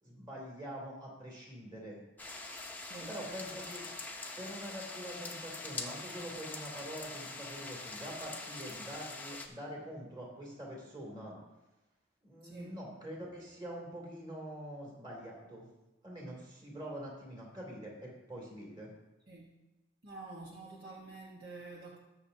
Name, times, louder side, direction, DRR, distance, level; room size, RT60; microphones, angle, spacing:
voice 1, 0.0-2.0 3.1-3.8 4.4-11.4 12.2-15.7 16.0-18.9, equal, 20° right, -3 dB, 2.9 m, -45 dB
sound 1, 2.2-9.5, left 3 dB, 10° left, 0.8 m, -44 dB
voice 2, 2.8-3.2 12.4-12.8 19.3-19.6 20.0-22.0, right 3 dB, 50° right, -3 dB, 1.3 m, -48 dB
19.5 x 6.9 x 2.8 m, 1.0 s
head